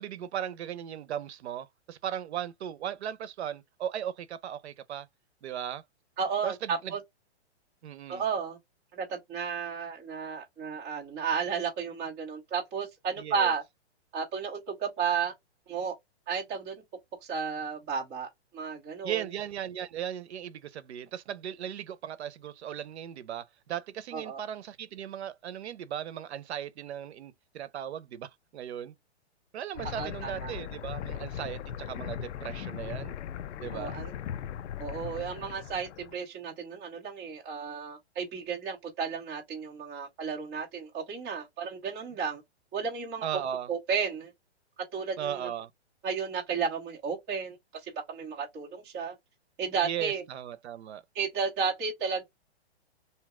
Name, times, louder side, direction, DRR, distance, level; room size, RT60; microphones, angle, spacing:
voice 1, 0.0-5.1 5.4-5.8 6.4-6.9 7.8-8.2 13.2-13.5 19.0-28.9 29.5-33.2 33.6-34.0 43.2-43.7 45.2-45.7 49.8-51.0, right 10 dB, 75° right, 0.6 m, -37 dB
voice 2, 6.2-7.0 8.1-8.6 8.9-13.6 14.1-15.3 15.7-16.0 16.3-16.8 17.2-18.3 18.5-19.2 24.1-24.4 30.0-30.6 33.7-34.1 34.8-42.4 42.7-43.3 43.7-44.3 44.9-45.5 46.0-47.6 47.8-49.2 49.6-50.2 51.1-52.2, right 6 dB, 10° right, 0.3 m, -33 dB
sound 1, 29.7-36.2, left 9 dB, 85° left, 0.5 m, -38 dB
2.8 x 2.1 x 3.5 m
hypercardioid pair, 155°, 34 cm